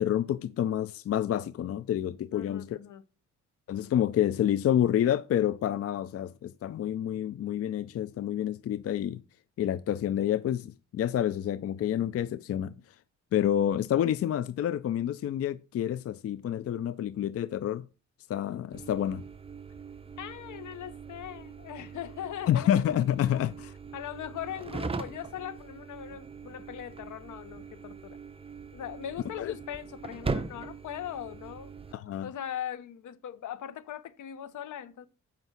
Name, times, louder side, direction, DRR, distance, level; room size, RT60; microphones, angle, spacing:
voice 1, 0.0-2.8 3.7-9.2 9.6-12.7 13.3-17.8 18.3-19.2 22.5-23.7 29.4-29.5 31.9-32.3, left 10 dB, 50° left, 0.4 m, -28 dB
voice 2, 2.3-3.0 20.2-22.8 23.3-23.4 23.9-28.2 28.7-35.1, left 10 dB, 70° left, 0.8 m, -40 dB
sound 1, 18.7-31.9, right 4 dB, 20° right, 0.7 m, -41 dB
8.1 x 5.2 x 6.0 m
cardioid pair, 110°, 31 cm